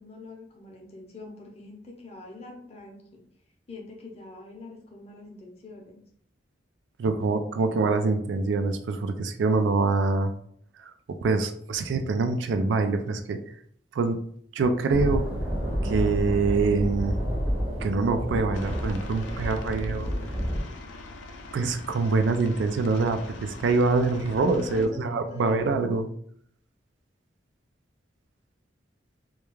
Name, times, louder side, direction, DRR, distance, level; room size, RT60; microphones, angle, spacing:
voice 1, 0.0-3.2 3.7-6.0 24.7-25.9, left 3 dB, 35° left, 0 dB, 0.6 m, -44 dB
voice 2, 7.0-10.3 10.8-13.4 13.9-14.2 14.5-15.3 15.8-17.2 17.8-20.1 21.5-26.1, right 3 dB, 75° right, 7 dB, 0.3 m, -25 dB
sound 1, 14.9-20.6, equal, 10° right, 0.6 m, -29 dB
Aircraft, 18.5-24.8, left 2 dB, 90° left, 0.4 m, -42 dB
2.3 x 2.2 x 3.0 m, 0.64 s
head